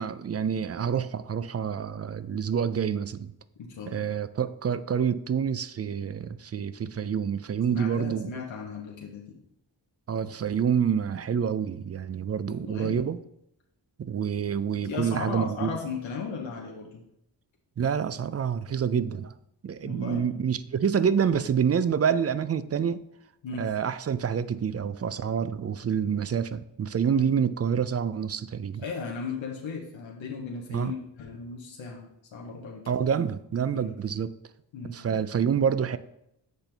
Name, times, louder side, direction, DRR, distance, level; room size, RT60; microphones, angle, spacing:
voice 1, 0.0-3.3 3.9-8.3 10.1-13.2 14.0-15.7 17.8-19.3 19.6-23.0 23.6-28.8 30.7-30.9 32.9-34.3 34.9-36.0, right 7 dB, 35° right, 14 dB, 0.4 m, -27 dB
voice 2, 3.6-4.1 7.7-9.4 12.4-13.0 14.8-17.0 19.8-20.2 23.4-23.7 27.1-27.3 28.8-32.0 32.3-33.1 33.7-33.9 34.7-35.0, left 5 dB, 90° left, -2 dB, 1.0 m, -36 dB
7.9 x 4.3 x 3.4 m, 0.79 s
cardioid pair, 50°, 45 cm